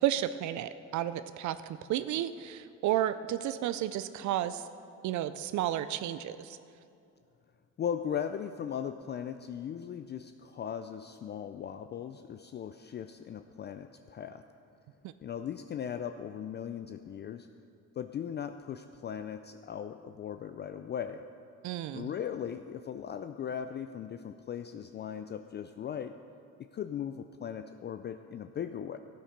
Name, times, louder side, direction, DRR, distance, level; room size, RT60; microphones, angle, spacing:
voice 1, 0.0-4.7 5.0-6.6 15.0-15.1 21.6-22.1, right 12 dB, 70° right, 13 dB, 0.5 m, -32 dB
voice 2, 7.8-14.4 15.2-17.5 18.0-21.2 21.9-26.2 26.6-29.0, left 8 dB, 35° left, 9 dB, 0.4 m, -38 dB
13.0 x 9.3 x 5.1 m, 2.5 s
cardioid pair, 110°, 30 cm